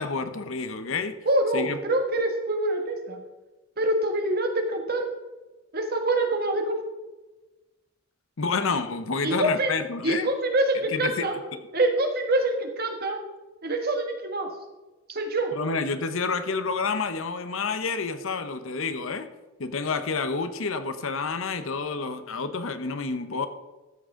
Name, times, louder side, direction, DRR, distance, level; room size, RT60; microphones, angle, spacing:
voice 1, 0.0-1.2 1.5-1.8 8.4-10.3 10.9-11.6 15.5-19.3 19.6-23.5, left 4 dB, 65° left, 0.8 m, -29 dB
voice 2, 1.2-3.2 3.8-5.1 5.7-6.8 9.2-9.7 10.0-11.3 11.7-13.2 13.6-14.5 15.1-15.5, right 1 dB, 45° right, 1.4 m, -25 dB
13.5 x 7.7 x 3.7 m
head